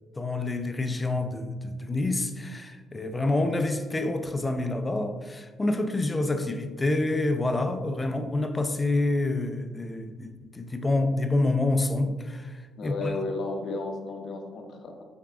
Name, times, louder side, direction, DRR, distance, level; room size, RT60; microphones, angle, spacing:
voice 1, 0.2-12.5 12.8-13.2, left 2 dB, 20° left, 0.4 m, -27 dB
voice 2, 12.8-15.0, left 3 dB, 65° left, 0.7 m, -33 dB
5.7 x 3.6 x 2.4 m
cardioid pair, 90°, 0 cm